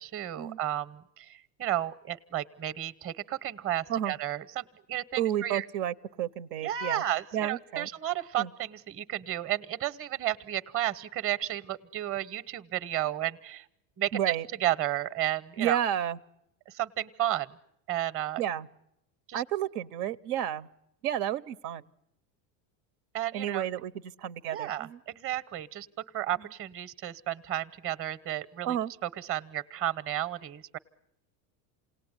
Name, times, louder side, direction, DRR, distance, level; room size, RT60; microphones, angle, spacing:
voice 1, 0.0-5.6 6.6-13.7 14.0-15.8 16.7-17.5 17.9-18.4 19.3-19.4 23.1-23.7 24.5-25.9 26.1-28.8 29.0-30.8, right 13 dB, 30° right, 16 dB, 0.9 m, -32 dB
voice 2, 5.2-7.0 7.3-7.9 8.4-8.5 14.1-14.5 15.6-16.2 18.4-18.7 19.3-20.7 21.0-21.8 23.3-23.9 24.2-25.0 28.6-28.9, right 11 dB, 85° right, 12 dB, 0.9 m, -31 dB
28.5 x 18.5 x 9.8 m, 0.81 s
supercardioid pair, 120°, 45 cm